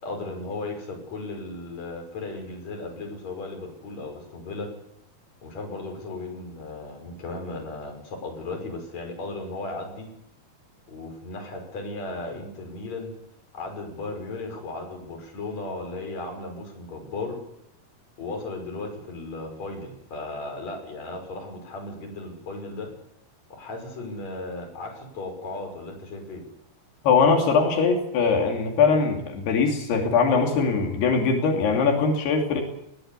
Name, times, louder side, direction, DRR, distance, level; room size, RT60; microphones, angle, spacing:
voice 1, 0.0-4.7 5.4-10.1 10.9-13.1 13.5-17.4 18.2-22.9 23.5-26.4, left 2 dB, 45° left, 3 dB, 6.7 m, -36 dB
voice 2, 27.0-32.6, left 5 dB, 85° left, 2 dB, 4.8 m, -21 dB
21.0 x 18.5 x 8.4 m, 0.76 s
omnidirectional pair, 4.5 m